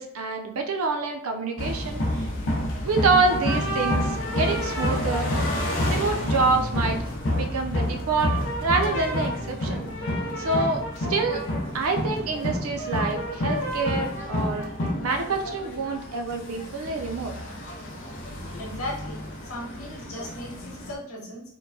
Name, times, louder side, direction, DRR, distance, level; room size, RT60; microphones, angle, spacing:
voice 1, 0.0-2.0 2.8-5.3 5.9-7.0 7.3-8.3 8.6-9.8 10.4-11.4 11.7-14.7 15.0-17.3, right 3 dB, 80° right, 4 dB, 0.5 m, -26 dB
sound 1, 1.6-20.9, left 1 dB, 60° left, 0.6 m, -29 dB
voice 2, 18.5-21.4, left 1 dB, 85° left, -3 dB, 1.0 m, -37 dB
4.4 x 2.2 x 2.7 m, 0.75 s
head